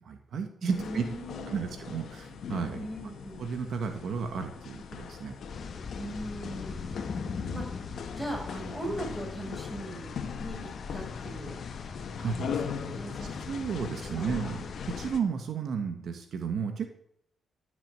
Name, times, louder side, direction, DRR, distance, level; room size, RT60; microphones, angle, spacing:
voice 1, 0.0-1.0 1.5-2.8 3.4-5.3 7.4-7.6 12.2-12.5 13.5-16.9, right 6 dB, 70° right, 5 dB, 1.7 m, -33 dB
voice 2, 0.6-1.7 2.7-3.5 6.0-7.0 7.5-7.8 8.1-10.1 10.4-11.6 12.2-13.4 14.0-14.5, right 1 dB, 10° right, 0 dB, 6.7 m, -39 dB
sound 1, 0.7-15.2, left 7 dB, 70° left, 1.6 m, -40 dB
sound 2, 5.5-15.1, left 5 dB, 50° left, 1.5 m, -40 dB
14.0 x 7.2 x 9.0 m, 0.72 s
cardioid pair, 90°, 0 cm